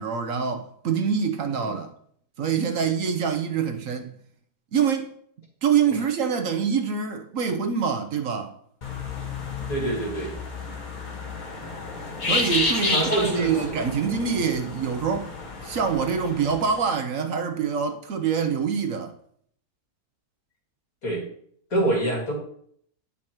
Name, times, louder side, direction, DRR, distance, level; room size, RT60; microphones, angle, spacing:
voice 1, 0.0-1.9 2.4-4.2 4.7-5.1 5.6-8.5 12.3-15.3 15.6-19.1, right 6 dB, 60° right, 1.1 m, -25 dB
sound 1, 8.8-16.8, left 3 dB, 35° left, 1.1 m, -31 dB
voice 2, 9.7-10.3 12.9-14.4 21.0-21.2 21.7-22.3, right 2 dB, 65° left, 2.9 m, -26 dB
10.0 x 5.5 x 4.5 m
omnidirectional pair, 1.6 m